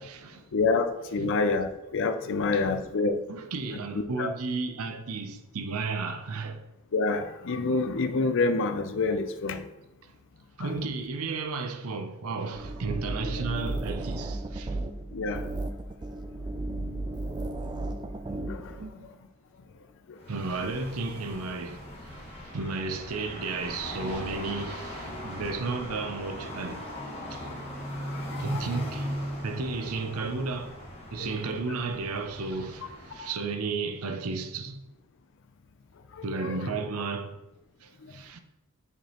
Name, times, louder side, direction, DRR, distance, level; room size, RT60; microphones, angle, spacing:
voice 1, 0.0-0.4 0.7-0.8 1.2-1.3 2.2-2.8 3.3-6.6 10.6-14.8 18.8-19.1 20.3-26.9 27.3-27.5 28.4-30.8 31.1-34.8 36.2-37.4 37.8-38.4, right 3 dB, 80° right, 0.6 m, -33 dB
voice 2, 0.5-3.2 3.9-4.3 6.9-9.7 10.6-10.7 15.1-15.5 18.5-18.8 20.1-20.2 28.1-28.6 31.2-31.4 33.2-33.3 36.2-36.7, left 3 dB, 60° left, 0.5 m, -28 dB
sound 1, 12.5-18.9, right 2 dB, 20° right, 0.4 m, -34 dB
sound 2, 20.2-33.4, equal, 30° left, 1.3 m, -39 dB
6.5 x 4.9 x 3.0 m
head